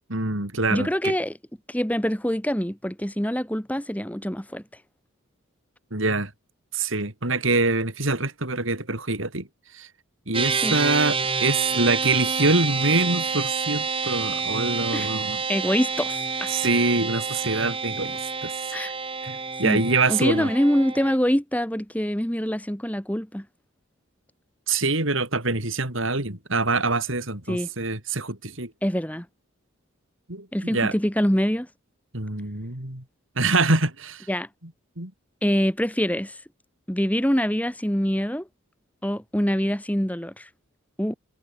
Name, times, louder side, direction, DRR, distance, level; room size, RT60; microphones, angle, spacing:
voice 1, 0.1-1.1 5.9-6.3 6.7-9.5 9.7-9.9 10.3-15.4 16.5-18.7 19.2-20.5 24.7-28.7 30.3-30.9 32.1-33.0 33.4-34.3 35.0-35.1, right 3 dB, 70° right, 4.8 m, -25 dB
voice 2, 0.7-1.4 1.7-4.6 10.6-10.8 14.9-15.1 15.5-16.5 18.7-18.9 19.6-19.8 20.1-23.5 27.5-27.7 28.8-29.3 30.5-31.7 34.3-34.5 35.4-36.4 36.9-38.5 39.0-40.5 41.0-41.1, equal, 5° left, 1.8 m, -25 dB
sound 1, 10.3-21.2, right 5 dB, 25° right, 6.4 m, -28 dB
head